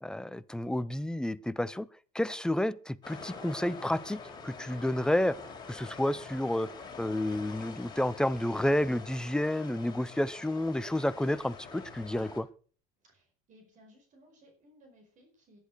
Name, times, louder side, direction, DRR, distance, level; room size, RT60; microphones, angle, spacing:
voice 1, 0.0-1.9 2.1-5.4 5.7-6.7 7.0-12.5, left 1 dB, 5° left, 0.6 m, -30 dB
sound 1, 3.0-12.4, left 4 dB, 25° left, 4.3 m, -46 dB
voice 2, 13.0-15.6, equal, 45° right, 5.0 m, -60 dB
11.0 x 10.5 x 6.4 m
cardioid pair, 125°, 19 cm